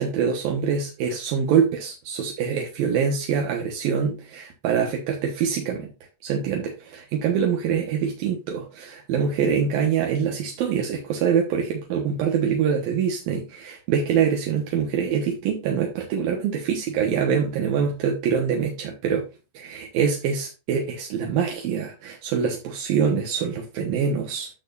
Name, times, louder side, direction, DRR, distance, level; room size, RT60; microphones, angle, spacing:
voice 1, 0.0-5.9 6.2-19.3 19.5-24.5, right 7 dB, 65° right, 1 dB, 2.3 m, -24 dB
10.0 x 6.4 x 2.6 m, 0.29 s
omnidirectional pair, 5.9 m